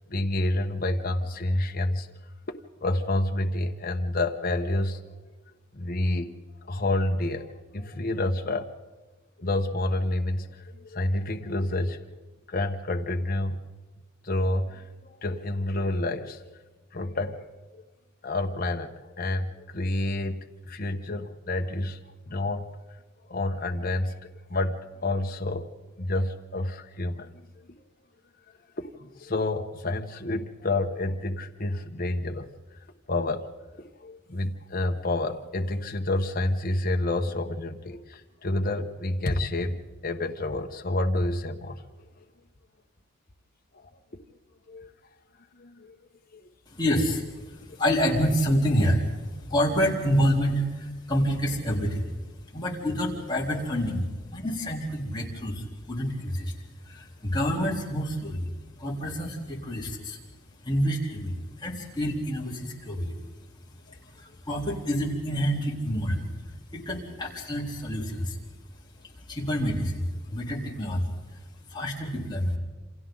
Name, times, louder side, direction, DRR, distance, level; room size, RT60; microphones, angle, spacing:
voice 1, 0.1-2.2 2.5-5.0 5.7-6.3 6.6-8.7 9.4-12.0 12.5-13.6 14.2-16.6 16.9-17.8 18.2-22.0 22.3-22.8 23.3-24.2 24.5-25.7 26.0-27.4 28.8-32.5 32.7-33.5 33.8-41.9 43.7-44.2 44.7-44.9 45.6-46.0 46.3-46.5, left 2 dB, 45° left, 3 dB, 1.2 m, -29 dB
voice 2, 46.7-52.1 52.4-60.3 60.6-63.3 63.7-72.6, equal, 20° left, -3 dB, 3.8 m, -28 dB
28.5 x 27.0 x 4.0 m, 1.2 s
head